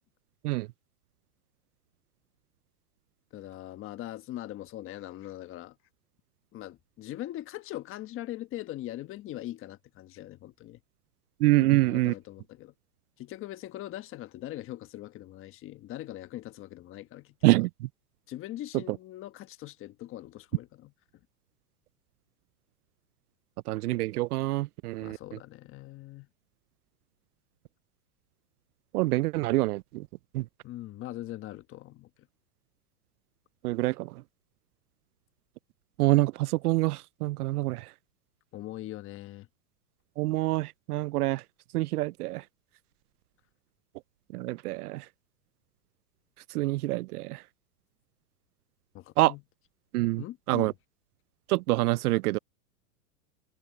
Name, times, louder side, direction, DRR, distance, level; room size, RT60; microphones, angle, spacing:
voice 1, 3.3-5.7 6.5-10.8 11.6-12.7 13.2-17.6 18.3-20.9 25.0-26.3 30.6-32.1 38.5-39.5 48.9-49.4 50.2-50.7, left 14 dB, 25° left, 1.3 m, -41 dB
voice 2, 11.4-12.1 17.4-17.9 18.9-19.0 23.7-25.2 28.9-30.1 30.3-30.4 33.6-34.1 36.0-37.9 40.2-41.4 41.7-42.4 44.3-45.0 46.5-47.4 49.2-49.3 49.9-50.7 51.5-52.4, right 19 dB, 70° right, 0.5 m, -26 dB
supercardioid pair, 140°, 47 cm